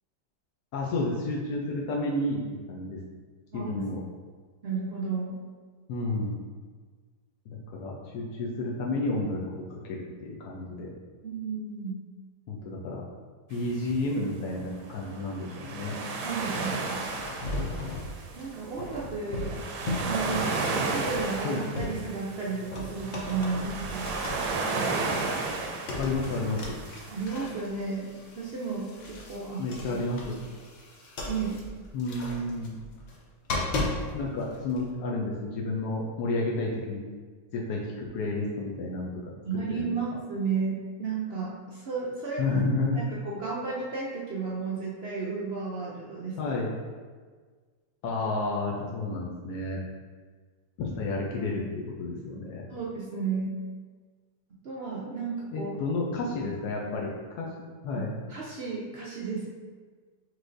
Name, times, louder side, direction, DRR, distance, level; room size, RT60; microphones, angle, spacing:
voice 1, 0.7-3.0 3.5-4.0 5.9-6.4 7.5-10.9 12.5-13.0 13.5-16.0 20.2-20.4 21.4-21.6 26.0-26.8 29.6-30.4 31.9-32.8 34.1-37.0 37.5-39.3 39.7-39.9 42.4-43.1 46.4-46.7 48.0-49.8 50.8-52.7 55.5-57.5 57.8-58.1, left 2 dB, 75° left, -3 dB, 1.1 m, -31 dB
voice 2, 3.5-3.9 4.6-5.4 11.2-12.0 16.2-17.0 18.3-19.5 20.1-20.4 20.7-24.1 27.1-30.0 31.3-31.6 39.5-42.4 42.9-46.5 52.7-53.5 54.6-55.7 57.9-59.5, right 4 dB, 70° right, -5 dB, 0.5 m, -33 dB
sound 1, 13.5-27.2, right 3 dB, 85° right, 1.2 m, -33 dB
sound 2, 16.4-22.4 22.7-34.9, left 2 dB, 60° left, 0.9 m, -37 dB
6.0 x 3.1 x 2.5 m, 1.5 s
omnidirectional pair, 1.7 m